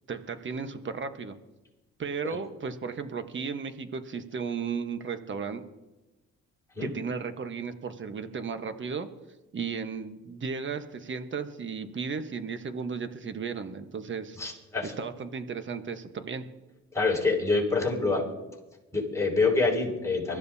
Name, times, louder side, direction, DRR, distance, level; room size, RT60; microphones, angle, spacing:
voice 1, 0.1-1.4 2.0-5.6 6.8-9.1 9.5-14.4 14.8-16.4, right 5 dB, 40° right, 8 dB, 1.3 m, -35 dB
voice 2, 14.4-14.9 16.9-18.2 18.9-20.4, left 3 dB, 10° left, -3 dB, 5.8 m, -26 dB
24.0 x 14.5 x 2.8 m, 1.1 s
cardioid pair, 90°, 30 cm